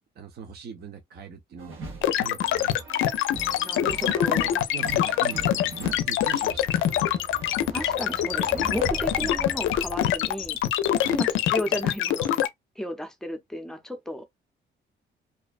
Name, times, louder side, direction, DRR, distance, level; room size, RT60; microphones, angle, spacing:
voice 1, 0.2-1.8 2.1-2.9 4.0-4.2 4.7-6.7 9.2-9.3 11.0-11.2, right 6 dB, 55° right, 0.7 m, -40 dB
sound 1, 1.6-10.3 10.7-12.0, right 3 dB, 80° right, 1.1 m, -43 dB
sound 2, 2.0-12.5, left 11 dB, 75° left, 0.4 m, -24 dB
voice 2, 3.6-4.6 7.7-10.6 11.1-12.5 12.8-14.3, equal, 5° left, 0.6 m, -34 dB
sound 3, 6.0-10.9, right 2 dB, 30° right, 1.0 m, -39 dB
2.5 x 2.1 x 2.4 m
cardioid pair, 90°, 20 cm